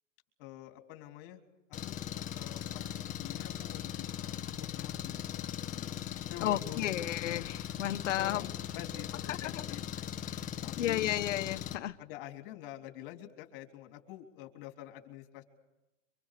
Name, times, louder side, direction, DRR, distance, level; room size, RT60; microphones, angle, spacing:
voice 1, 0.4-1.4 1.8-2.0 2.3-5.9 6.3-6.9 8.2-9.8 10.6-11.1 12.0-15.4, left 13 dB, 45° left, 5 dB, 3.6 m, -47 dB
Engine, 1.7-11.8, left 11 dB, 20° left, 1.6 m, -39 dB
voice 2, 6.4-8.4 9.3-9.6 10.2-10.4 10.8-12.0, left 13 dB, 75° left, 12 dB, 1.3 m, -33 dB
25.5 x 25.0 x 6.8 m, 0.96 s
supercardioid pair, 150°, 37 cm